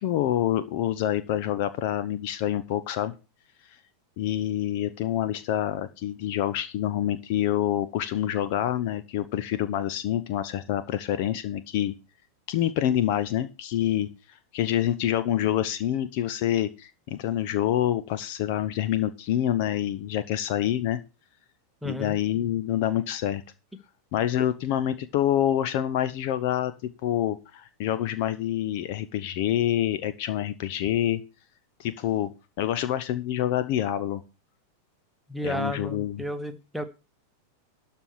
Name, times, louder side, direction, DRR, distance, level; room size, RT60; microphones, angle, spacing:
voice 1, 0.0-3.1 4.2-11.9 12.5-14.1 14.5-21.0 21.8-23.4 24.1-31.2 31.8-32.3 32.6-34.2 35.4-36.2, left 11 dB, 45° left, 13 dB, 0.9 m, -27 dB
voice 2, 21.8-22.2 35.3-36.8, equal, ahead, 6 dB, 1.5 m, -32 dB
12.5 x 4.5 x 8.1 m, 0.30 s
figure-of-eight pair, 90°, 0 cm